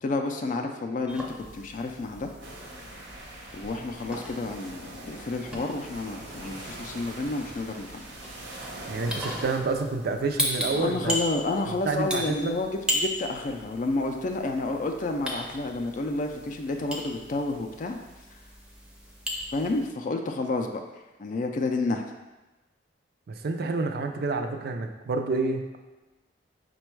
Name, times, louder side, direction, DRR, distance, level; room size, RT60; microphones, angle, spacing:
voice 1, 0.0-1.2 1.5-2.3 3.5-8.1 10.7-18.0 19.5-20.8 21.2-22.1, left 2 dB, 45° left, 4 dB, 0.3 m, -30 dB
sound 1, 1.1-19.9, equal, 5° right, 0.6 m, -37 dB
sound 2, 2.4-9.6, right 1 dB, 70° right, 0.9 m, -42 dB
voice 2, 8.9-11.2 11.8-12.5 23.3-25.8, right 3 dB, 55° right, 5 dB, 0.4 m, -28 dB
5.1 x 2.3 x 4.5 m, 1.1 s
head